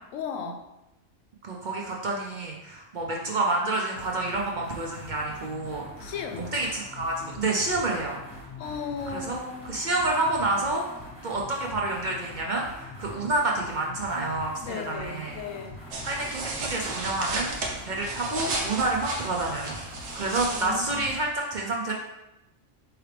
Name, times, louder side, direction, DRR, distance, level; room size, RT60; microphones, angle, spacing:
voice 1, 0.1-0.6 6.0-6.6 8.6-9.9 14.6-15.8 20.5-21.1, left 6 dB, 85° left, 6 dB, 1.0 m, -36 dB
voice 2, 1.4-6.1 6.5-8.2 9.1-9.4 9.7-10.9 11.2-15.4 16.0-17.6 17.9-19.7 20.1-21.9, right 2 dB, 55° right, -1 dB, 0.6 m, -28 dB
sound 1, 3.9-21.3, left 1 dB, 15° left, 1.1 m, -44 dB
sound 2, 15.9-21.3, right 2 dB, 80° right, 1.2 m, -34 dB
4.7 x 3.2 x 3.2 m, 0.92 s
omnidirectional pair, 1.3 m